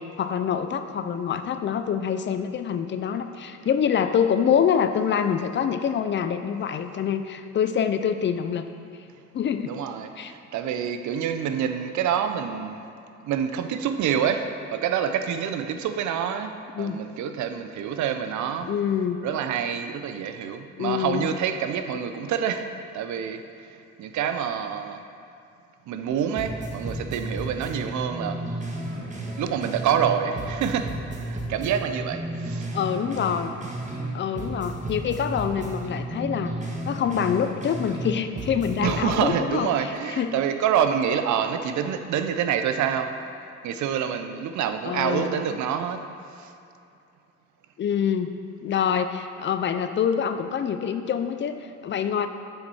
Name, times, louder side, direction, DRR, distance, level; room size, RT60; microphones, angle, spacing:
voice 1, 0.2-8.7 9.3-9.7 10.2-10.3 16.7-17.0 18.6-19.2 20.8-21.3 32.7-33.5 34.1-36.5 36.8-40.3 44.8-45.6 47.8-48.4 48.6-52.3, left 8 dB, 40° left, 9 dB, 0.4 m, -26 dB
voice 2, 9.7-12.8 13.2-18.7 19.2-22.7 22.9-23.4 24.0-25.0 25.9-28.4 29.4-32.7 38.7-43.1 43.6-46.0 46.4-46.5, right 8 dB, 70° right, 8 dB, 0.5 m, -27 dB
sound 1, 26.1-26.2 26.4-30.1 30.4-34.1 34.4-38.1 38.4-39.2, right 1 dB, 25° right, 1.2 m, -33 dB
6.4 x 4.3 x 4.7 m, 2.6 s
cardioid pair, 90°, 30 cm